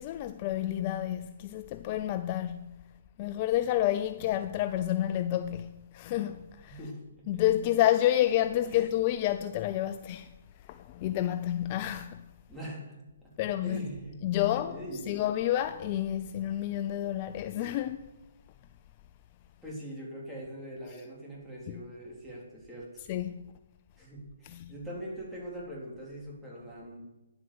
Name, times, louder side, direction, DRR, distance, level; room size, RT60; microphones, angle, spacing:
voice 1, 0.0-2.7 3.2-6.8 7.3-10.3 10.7-12.2 13.4-13.9 14.2-14.8 15.1-18.0 21.7-21.8 23.1-23.3 24.4-24.7, left 12 dB, 35° left, 0.4 m, -29 dB
voice 2, 6.7-7.4 8.6-8.8 12.5-13.3 13.6-14.2 14.5-15.2 19.6-23.1 24.0-27.0, right 1 dB, 5° right, 3.6 m, -42 dB
10.0 x 8.0 x 7.0 m
hypercardioid pair, 140°, 0 cm